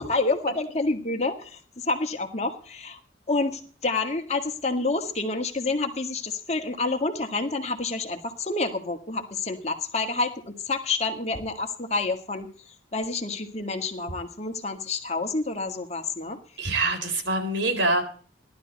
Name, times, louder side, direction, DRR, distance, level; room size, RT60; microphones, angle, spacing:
voice 1, 0.1-3.0 3.3-12.5 12.9-16.4, left 3 dB, 35° left, 5 dB, 1.8 m, -28 dB
voice 2, 16.6-18.0, right 2 dB, 70° right, 4 dB, 4.3 m, -25 dB
17.0 x 12.0 x 4.1 m, 0.43 s
head